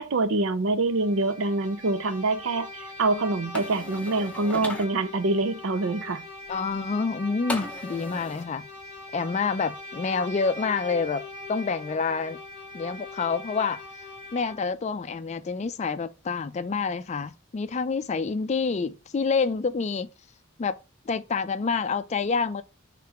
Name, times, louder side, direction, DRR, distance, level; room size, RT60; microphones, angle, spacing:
voice 1, 0.0-6.2, right 2 dB, 80° right, 0.6 m, -25 dB
Bowed string instrument, 0.9-14.8, left 2 dB, 20° right, 1.4 m, -42 dB
sound 1, 3.5-4.9 7.5-8.4, left 2 dB, 5° left, 0.7 m, -36 dB
voice 2, 6.5-8.6 9.1-11.2 11.5-12.4 12.7-13.8 14.3-20.1 20.6-20.8 21.1-22.6, left 4 dB, 35° left, 0.4 m, -27 dB
3.5 x 3.3 x 4.7 m
head